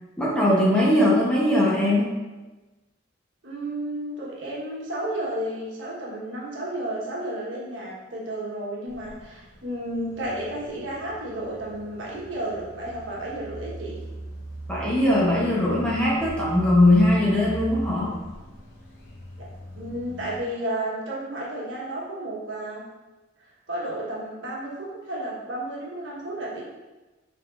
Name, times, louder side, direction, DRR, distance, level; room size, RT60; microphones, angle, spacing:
voice 1, 0.2-2.1 14.7-18.2, left 1 dB, 5° left, -6 dB, 0.9 m, -20 dB
voice 2, 3.4-14.0 19.4-19.5 19.8-22.8 23.4-26.6, right 1 dB, 80° right, -5 dB, 1.3 m, -32 dB
sound 1, 8.9-20.4, right 1 dB, 50° left, 0.9 m, -40 dB
5.4 x 3.6 x 2.5 m, 1.2 s
head